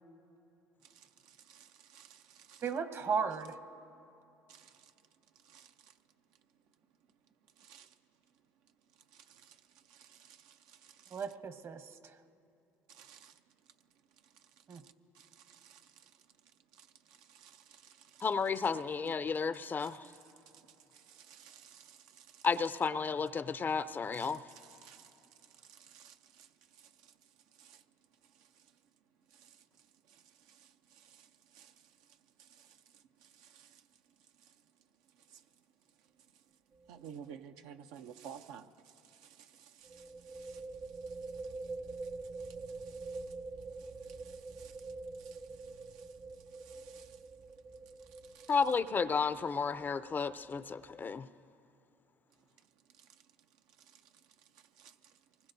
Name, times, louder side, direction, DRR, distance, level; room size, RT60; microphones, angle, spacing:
voice 1, 0.8-2.6 4.5-6.0 6.3-6.4 7.1-7.2 7.5-11.3 12.9-13.7 14.1-18.3 19.0-19.3 19.8-22.5 24.1-28.8 29.3-34.7 35.0-36.6 36.9-48.6 52.3-55.5, right 8 dB, 80° right, 0.6 m, -58 dB
voice 2, 2.6-3.6 11.1-12.2 14.7-14.8, right 6 dB, 45° right, 1.0 m, -35 dB
voice 3, 18.2-20.1 22.4-24.4 48.5-51.3, left 5 dB, 30° left, 0.4 m, -32 dB
sound 1, 36.7-37.0 37.3-37.4 39.8-51.2, right 3 dB, 30° right, 0.6 m, -46 dB
24.0 x 20.5 x 2.7 m
supercardioid pair, 85°, 6 cm